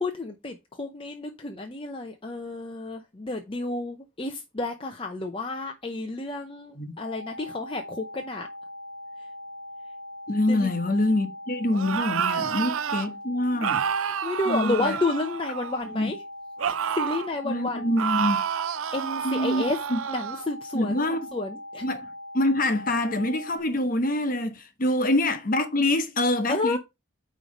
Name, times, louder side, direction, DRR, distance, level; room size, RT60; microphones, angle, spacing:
voice 1, 0.0-8.5 10.5-10.7 12.4-12.6 13.5-16.2 16.7-17.9 18.9-19.8 20.1-21.0 21.3-21.8 26.5-26.8, left 2 dB, 25° left, 0.7 m, -31 dB
sound 1, 7.0-23.6, left 1 dB, 50° right, 1.6 m, -41 dB
voice 2, 10.3-13.8 14.5-15.0 15.8-16.1 17.4-18.4 19.2-19.6 19.9-20.0 20.7-21.2 21.8-22.1 22.3-26.8, left 1 dB, 45° left, 1.1 m, -25 dB
sound 2, 11.7-13.1 13.6-15.9 16.6-17.3 18.0-20.5, right 8 dB, 85° right, 0.5 m, -29 dB
9.1 x 3.2 x 5.2 m
head